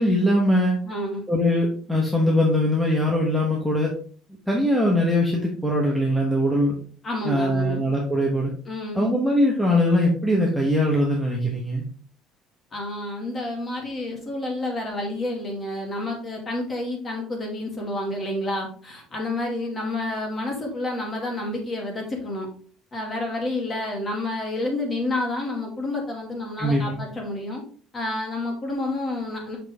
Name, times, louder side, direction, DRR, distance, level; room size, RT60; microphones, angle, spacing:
voice 1, 0.0-0.8 1.3-3.9 4.5-6.8 7.2-8.5 8.9-11.8 26.6-27.0, left 1 dB, ahead, -3 dB, 1.1 m, -21 dB
voice 2, 0.9-1.2 7.0-7.8 8.7-9.1 12.7-22.5 22.9-27.6 27.9-29.6, left 2 dB, 25° left, 1 dB, 2.2 m, -29 dB
6.0 x 5.9 x 3.5 m, 0.44 s
cardioid pair, 160°, 0 cm